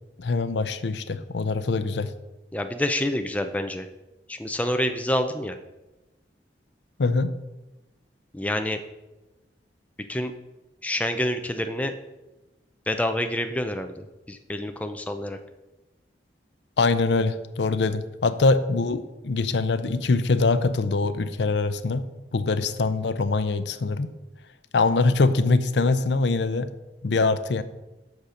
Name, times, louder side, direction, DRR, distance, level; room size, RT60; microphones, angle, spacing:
voice 1, 0.2-2.1 7.0-7.3 16.8-22.0 22.3-24.1 24.7-26.7 27.0-27.6, left 3 dB, 80° left, 12 dB, 0.6 m, -23 dB
voice 2, 2.5-3.9 4.3-5.6 8.3-8.8 10.1-10.3 10.8-11.9 12.9-15.4, left 1 dB, 10° left, 6 dB, 0.5 m, -27 dB
8.0 x 6.4 x 5.1 m, 1.0 s
head